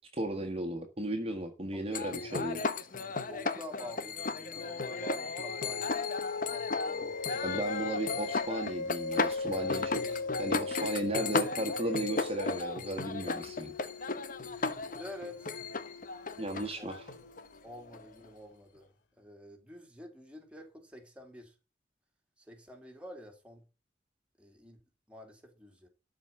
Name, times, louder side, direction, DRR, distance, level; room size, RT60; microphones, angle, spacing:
voice 1, 0.1-2.6 7.4-13.7 16.4-17.1, right 1 dB, 35° right, 1.5 m, -35 dB
voice 2, 1.7-2.3 3.3-6.0 6.4-7.6 15.0-15.6 16.8-17.0 17.6-18.9 19.2-21.5 22.4-23.6 24.4-24.8 25.1-25.9, left 1 dB, 5° right, 2.9 m, -48 dB
sound 1, 1.9-18.2, left 4 dB, 50° left, 1.1 m, -35 dB
sound 2, 5.2-18.1, left 3 dB, 75° left, 0.9 m, -40 dB
13.0 x 5.0 x 6.9 m
head